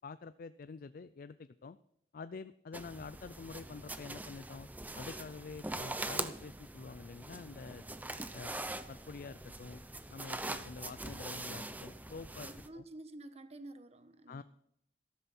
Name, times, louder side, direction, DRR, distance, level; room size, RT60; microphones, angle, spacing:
voice 1, 0.0-1.8 2.1-4.7 4.9-7.8 8.3-8.5 8.9-9.8 10.1-12.8 14.3-14.4, left 4 dB, 55° left, 13 dB, 0.4 m, -47 dB
sound 1, 2.7-12.7, right 2 dB, 10° right, 0.7 m, -43 dB
voice 2, 12.4-14.4, right 1 dB, 35° right, 9 dB, 1.2 m, -50 dB
14.0 x 12.5 x 4.3 m, 0.74 s
head